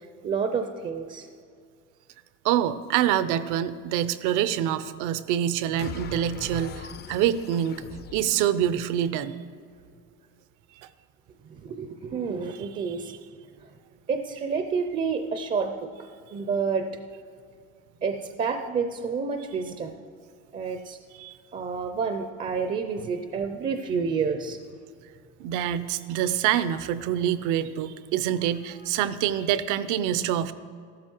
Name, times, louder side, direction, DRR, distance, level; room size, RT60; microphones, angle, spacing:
voice 1, 0.2-1.3 11.4-13.1 14.1-15.9 16.3-17.0 18.0-20.0 20.5-21.0 21.5-24.6, right 5 dB, 25° right, 7 dB, 0.5 m, -29 dB
voice 2, 2.4-7.8 8.1-9.3 12.9-13.2 21.2-21.4 25.4-30.5, right 10 dB, 65° right, 14 dB, 0.7 m, -26 dB
sound 1, 5.8-9.2, left 7 dB, 30° left, 0.5 m, -42 dB
14.0 x 12.5 x 4.5 m, 2.3 s
cardioid pair, 165°, 33 cm